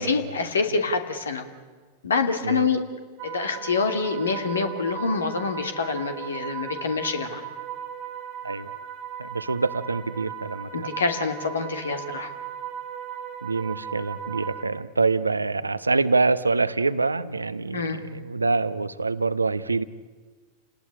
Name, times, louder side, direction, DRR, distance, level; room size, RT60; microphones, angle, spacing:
voice 1, 0.0-1.5 2.0-2.8 3.2-7.4 10.7-12.3 17.7-18.0, left 4 dB, 70° left, 7 dB, 2.7 m, -26 dB
sound 1, 3.2-14.6, right 9 dB, 40° right, 2.1 m, -37 dB
voice 2, 9.2-10.9 13.4-19.8, right 3 dB, 80° right, 14 dB, 1.0 m, -25 dB
29.5 x 19.0 x 10.0 m, 1.5 s
figure-of-eight pair, 90°, 0 cm